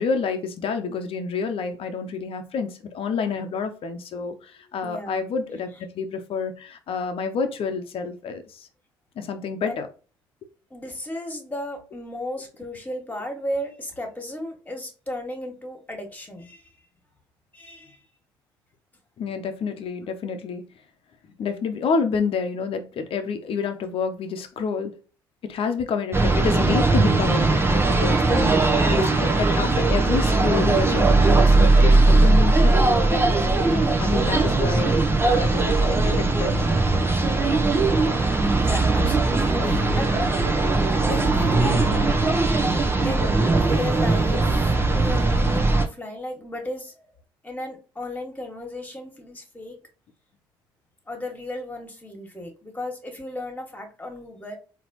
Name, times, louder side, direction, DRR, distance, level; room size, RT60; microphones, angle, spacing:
voice 1, 0.0-8.7 9.2-9.9 19.2-20.6 21.4-24.9 25.4-36.6, left 5 dB, 55° left, 7 dB, 0.9 m, -29 dB
voice 2, 4.8-5.2 9.6-9.8 10.7-16.8 17.5-18.0 33.6-34.1 38.6-40.2 41.0-42.1 43.0-47.0 47.4-49.8 51.1-54.6, left 1 dB, 15° left, 3 dB, 1.9 m, -34 dB
sound 1, 26.1-45.9, right 3 dB, 20° right, 1.0 m, -19 dB
4.2 x 3.0 x 3.0 m, 0.35 s
hypercardioid pair, 55°, 11 cm